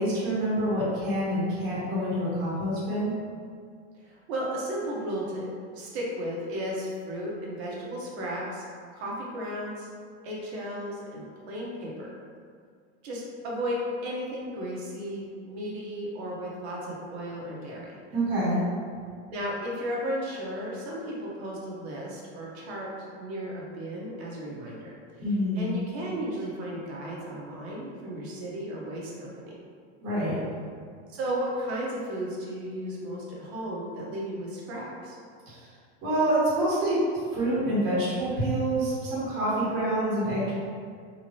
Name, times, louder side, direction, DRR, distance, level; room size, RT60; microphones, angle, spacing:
voice 1, 0.0-3.2 18.1-18.6 25.2-25.6 30.0-30.4 35.5-35.6 36.0-40.5, right 1 dB, 35° right, -9 dB, 1.3 m, -27 dB
voice 2, 3.9-5.5 5.7-8.6 8.9-9.9 10.2-12.1 13.0-18.0 19.3-22.9 23.2-25.0 25.5-29.5 31.1-35.2, equal, 75° right, -4 dB, 1.2 m, -34 dB
3.6 x 3.0 x 3.0 m, 2.1 s
supercardioid pair, 160°, 33 cm